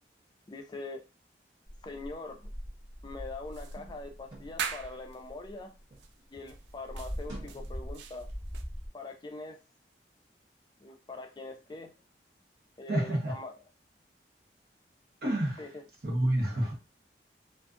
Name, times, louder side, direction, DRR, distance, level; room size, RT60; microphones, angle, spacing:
voice 1, 0.5-1.0 1.8-2.5 3.0-5.7 6.3-8.3 8.9-9.6 10.8-11.9 12.8-13.5 15.6-15.8, left 3 dB, 25° left, 4 dB, 0.3 m, -43 dB
sound 1, 1.7-6.1 6.3-8.9, equal, 25° right, 1.0 m, -42 dB
sound 2, 3.5-5.2 6.0-6.1 6.5-8.6, right 7 dB, 85° right, 0.3 m, -41 dB
voice 2, 12.9-13.3 15.2-15.7 16.0-16.7, right 1 dB, 60° right, 0 dB, 0.9 m, -28 dB
2.4 x 2.3 x 2.4 m, 0.29 s
head